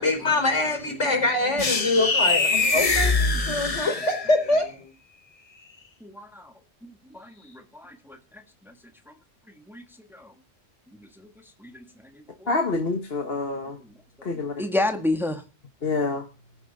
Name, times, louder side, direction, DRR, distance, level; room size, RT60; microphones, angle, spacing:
voice 1, 0.0-4.9, left 2 dB, 85° left, 4.8 m, -24 dB
sound 1, 1.6-4.5, left 3 dB, 30° left, 1.1 m, -23 dB
voice 2, 3.5-3.9 6.0-6.5 6.8-8.7 9.1-9.2 9.7-9.8 10.1-10.3 11.0-11.8 12.1-12.5 13.8-13.9 14.2-15.4, left 2 dB, ahead, 1.6 m, -32 dB
voice 3, 12.5-13.8 14.2-14.5 15.8-16.2, left 3 dB, 55° left, 1.7 m, -26 dB
18.0 x 9.9 x 5.3 m
omnidirectional pair, 1.2 m